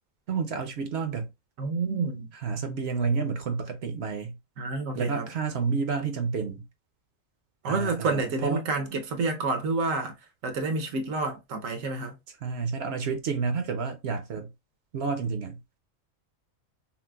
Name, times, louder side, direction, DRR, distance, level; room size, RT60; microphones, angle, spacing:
voice 1, 0.3-1.3 2.4-4.4 4.9-6.6 7.7-8.7 12.4-14.5 14.9-15.6, right 5 dB, 60° right, 0.8 m, -30 dB
voice 2, 1.6-2.3 4.6-5.3 7.6-10.1 10.4-12.2, right 3 dB, 80° right, 1.2 m, -29 dB
5.7 x 2.1 x 2.3 m
omnidirectional pair, 1.4 m